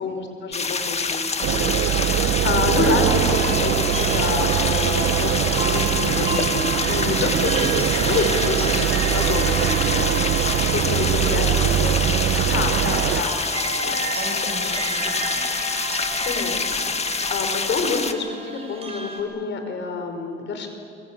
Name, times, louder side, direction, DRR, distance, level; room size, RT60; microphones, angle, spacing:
voice 1, 0.0-11.9 12.5-13.3 16.2-20.7, left 4 dB, 65° left, 5 dB, 5.1 m, -28 dB
sound 1, 0.5-18.1, left 4 dB, 35° left, 1.9 m, -26 dB
sound 2, 1.4-13.2, right 11 dB, 80° right, 1.1 m, -22 dB
sound 3, 3.0-19.2, right 2 dB, 30° right, 6.9 m, -33 dB
voice 2, 11.1-15.6, right 1 dB, 60° right, 2 dB, 7.9 m, -36 dB
25.0 x 25.0 x 8.9 m, 2.4 s
cardioid pair, 90°, 20 cm